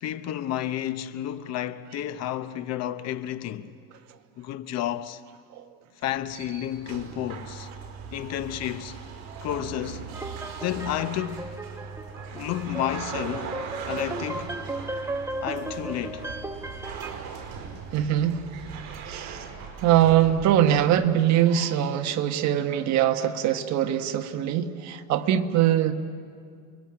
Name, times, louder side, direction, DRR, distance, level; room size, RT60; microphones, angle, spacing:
voice 1, 0.0-3.8 4.4-5.2 6.0-7.7 8.1-9.0 9.4-10.1 10.6-11.5 12.3-14.6 15.4-16.3, left 11 dB, 40° left, 0.9 m, -31 dB
sound 1, 6.0-21.2, right 6 dB, 60° right, 5.3 m, -39 dB
sound 2, 10.1-17.1, right 2 dB, 5° right, 0.9 m, -36 dB
voice 2, 17.9-18.4 19.1-19.5 19.8-25.9, right 11 dB, 45° right, 1.4 m, -22 dB
29.5 x 21.5 x 8.8 m
cardioid pair, 150°, 40 cm